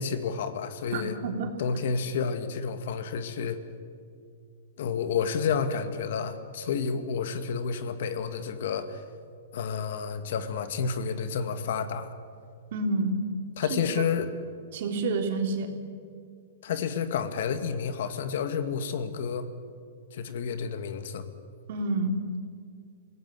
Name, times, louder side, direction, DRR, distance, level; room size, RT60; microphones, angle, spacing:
voice 1, 0.0-1.2 1.6-3.6 4.8-9.0 9.5-12.1 13.6-14.3 16.6-19.5 20.1-21.2, left 6 dB, 65° left, 10 dB, 2.0 m, -30 dB
voice 2, 0.9-1.5 12.7-13.2 13.7-13.8 14.7-15.7 21.7-22.1, right 3 dB, 60° right, 4 dB, 3.4 m, -28 dB
25.0 x 18.0 x 7.6 m, 2.3 s
hypercardioid pair, 145°, 0 cm